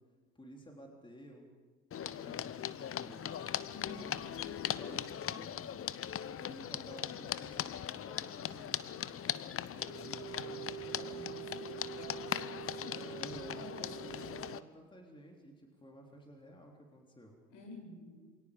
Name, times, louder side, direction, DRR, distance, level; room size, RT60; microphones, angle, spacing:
voice 1, 0.4-1.5 2.0-5.7 6.4-11.2 12.6-17.4, equal, 10° left, 1 dB, 3.7 m, -54 dB
sound 1, 1.9-14.6, left 9 dB, 30° left, 0.9 m, -40 dB
voice 2, 3.7-4.5 10.9-13.0 13.3-14.7 17.5-18.3, left 2 dB, 60° left, 1 dB, 8.0 m, -52 dB
sound 2, 9.7-14.6, right 15 dB, 75° right, 0.6 m, -46 dB
27.5 x 23.0 x 5.3 m, 1.4 s
hypercardioid pair, 65°, 46 cm